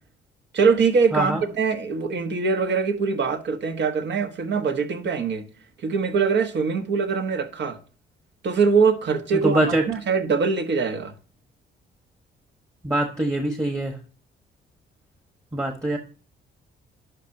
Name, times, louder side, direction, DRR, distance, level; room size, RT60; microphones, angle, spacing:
voice 1, 0.5-5.4 5.8-7.8 8.4-11.1, right 5 dB, 60° right, 1.3 m, -23 dB
voice 2, 9.4-9.8 12.8-14.0 15.5-16.0, right 1 dB, 15° right, 1.2 m, -23 dB
11.5 x 5.4 x 2.7 m
cardioid pair, 90°, 20 cm